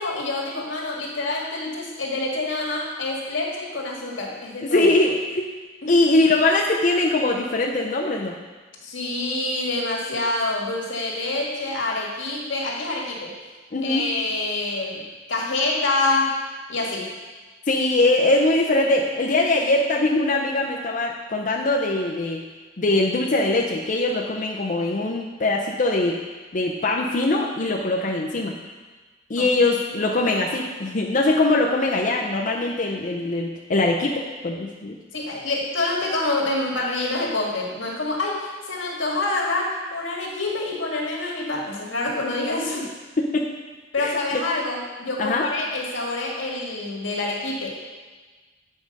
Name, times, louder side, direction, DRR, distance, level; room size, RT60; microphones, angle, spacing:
voice 1, 0.0-4.9 5.8-5.9 8.8-13.3 13.8-16.4 16.7-17.2 29.4-29.5 29.9-30.0 35.1-42.9 43.9-47.7, left 2 dB, 90° left, -2 dB, 1.8 m, -26 dB
voice 2, 4.6-5.5 5.9-8.3 13.7-14.0 17.7-22.4 22.8-26.2 26.5-28.5 29.3-35.0 43.2-43.5 44.0-44.4 45.2-45.4, left 2 dB, 45° left, -1 dB, 0.6 m, -22 dB
8.3 x 4.9 x 5.3 m, 1.3 s
head